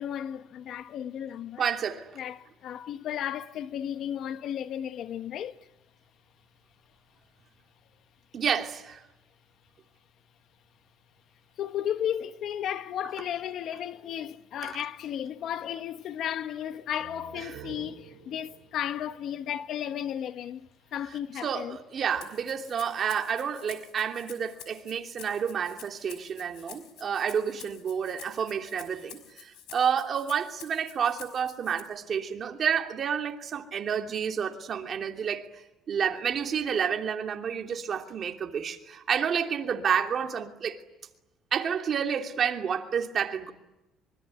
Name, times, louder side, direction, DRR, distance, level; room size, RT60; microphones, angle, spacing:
voice 1, 0.0-1.7 2.2-5.6 11.6-21.8, left 10 dB, 50° left, 1.1 m, -34 dB
voice 2, 1.6-2.1 8.3-9.0 14.6-14.8 17.5-17.6 21.4-35.5 35.9-40.8 41.5-43.5, right 7 dB, 40° right, 2.8 m, -30 dB
sound 1, 16.8-20.4, right 9 dB, 70° right, 5.5 m, -50 dB
Rattle (instrument), 22.2-31.8, left 11 dB, 80° left, 5.6 m, -49 dB
25.0 x 24.5 x 9.5 m
cardioid pair, 145°, 0 cm